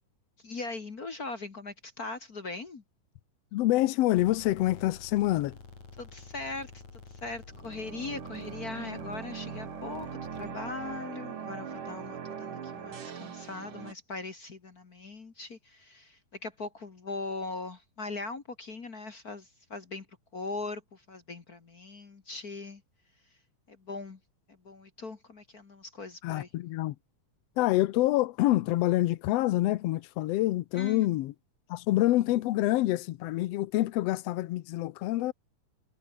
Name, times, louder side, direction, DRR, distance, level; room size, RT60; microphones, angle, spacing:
voice 1, 0.4-2.8 6.0-6.8 7.1-20.0 20.3-22.8 23.7-24.2 24.5-26.5 30.7-31.0, left 3 dB, 35° left, 1.7 m, -40 dB
voice 2, 3.5-5.6 26.2-26.9 27.6-31.3 31.7-35.3, left 16 dB, 80° left, 1.4 m, -26 dB
sound 1, 4.2-11.0, left 4 dB, 55° left, 6.3 m, -50 dB
sound 2, 7.5-13.9, right 7 dB, 70° right, 4.5 m, -41 dB
omnidirectional pair, 3.8 m